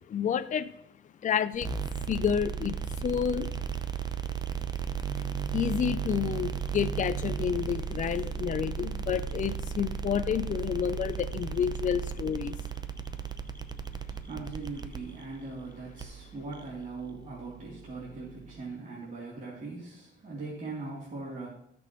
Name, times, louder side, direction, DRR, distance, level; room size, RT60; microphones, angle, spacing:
voice 1, 0.1-0.7 1.2-1.7 2.0-3.5 5.5-12.6, left 8 dB, 40° left, 12 dB, 0.5 m, -30 dB
sound 1, 1.5-18.6, right 7 dB, 20° right, 0.7 m, -35 dB
voice 2, 14.1-21.5, right 3 dB, 40° right, -7 dB, 3.2 m, -40 dB
14.5 x 6.0 x 3.1 m, 0.79 s
cardioid pair, 90°, 20 cm